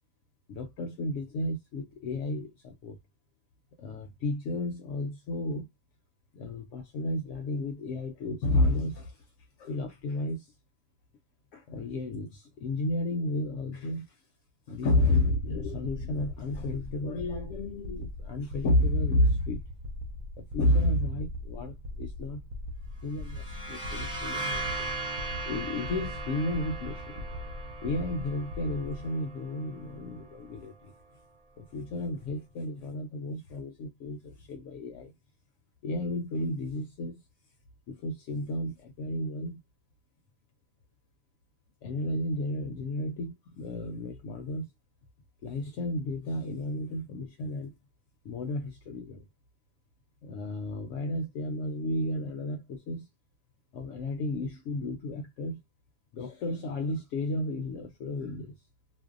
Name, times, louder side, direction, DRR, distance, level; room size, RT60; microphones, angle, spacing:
voice 1, 0.5-3.0 3.8-5.7 6.3-9.2 9.6-10.5 11.5-14.2 14.7-19.6 20.4-22.4 23.0-24.9 25.5-27.3 27.8-30.9 31.6-35.1 35.8-37.2 37.9-39.6 41.8-44.7 45.4-47.7 48.2-49.3 50.2-53.1 53.7-55.6 56.1-58.6, left 1 dB, 75° left, 0.9 m, -32 dB
sound 1, 15.1-29.1, left 1 dB, 80° right, 0.9 m, -41 dB
sound 2, 23.1-30.7, right 3 dB, 5° right, 0.6 m, -39 dB
2.6 x 2.0 x 2.4 m
omnidirectional pair, 1.3 m